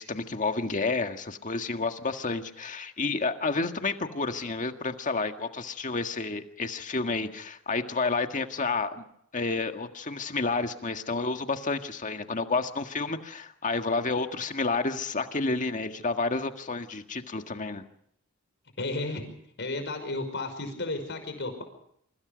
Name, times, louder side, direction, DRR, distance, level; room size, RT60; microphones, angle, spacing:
voice 1, 0.0-9.0 9.3-17.8, left 3 dB, 40° left, 6 dB, 1.7 m, -30 dB
voice 2, 18.8-19.3 19.6-21.6, left 2 dB, 60° left, 7 dB, 5.5 m, -33 dB
27.0 x 25.0 x 5.2 m, 0.71 s
head